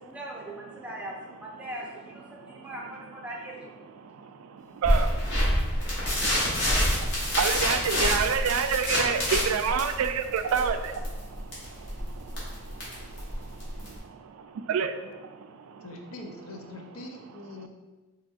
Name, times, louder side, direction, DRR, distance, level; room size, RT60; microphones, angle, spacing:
voice 1, 0.0-3.7, right 1 dB, 5° right, -3 dB, 0.6 m, -40 dB
sound 1, 4.8-14.0, equal, 55° left, 1.3 m, -27 dB
voice 2, 7.4-11.0 14.7-14.9, right 6 dB, 85° right, 9 dB, 0.3 m, -26 dB
voice 3, 15.8-17.7, left 2 dB, 90° left, 3 dB, 0.5 m, -42 dB
5.1 x 2.9 x 2.4 m, 1.2 s
head